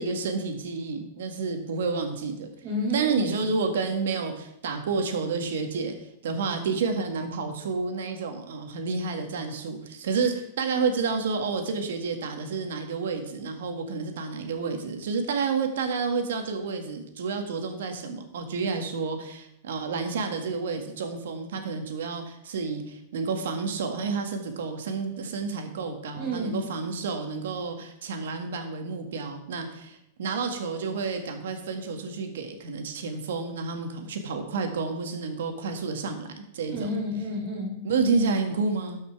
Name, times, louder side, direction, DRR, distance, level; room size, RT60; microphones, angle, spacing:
voice 1, 0.0-2.5 2.9-36.9 37.8-39.1, right 4 dB, 80° right, 5 dB, 1.8 m, -30 dB
voice 2, 2.6-3.2 26.1-26.6 36.7-37.8, equal, 45° right, -2 dB, 3.4 m, -30 dB
12.5 x 5.8 x 4.8 m, 0.77 s
hypercardioid pair, 135°, 0 cm